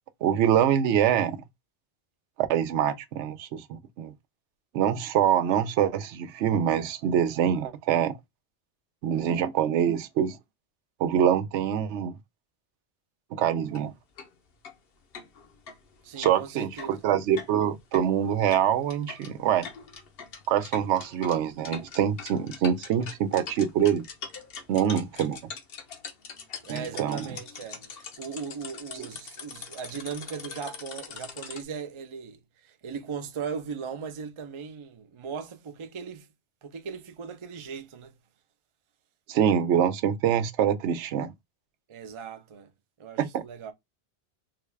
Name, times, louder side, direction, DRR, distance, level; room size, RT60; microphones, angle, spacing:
voice 1, 0.2-1.4 2.4-4.1 4.7-8.1 9.0-10.4 11.0-12.1 13.3-13.9 16.2-19.7 20.5-24.1 24.7-25.4 26.7-27.3 28.9-29.1 39.3-41.3 43.2-43.4, right 9 dB, 85° right, 0.9 m, -25 dB
sound 1, 13.7-13.8 14.2-14.3 14.6-14.7 15.1-31.6, left 6 dB, 60° left, 0.9 m, -43 dB
voice 2, 16.0-17.0 26.6-36.3 36.6-38.1 41.9-42.7 43.0-43.7, right 6 dB, 40° right, 0.4 m, -38 dB
3.8 x 2.2 x 3.2 m
omnidirectional pair, 1.2 m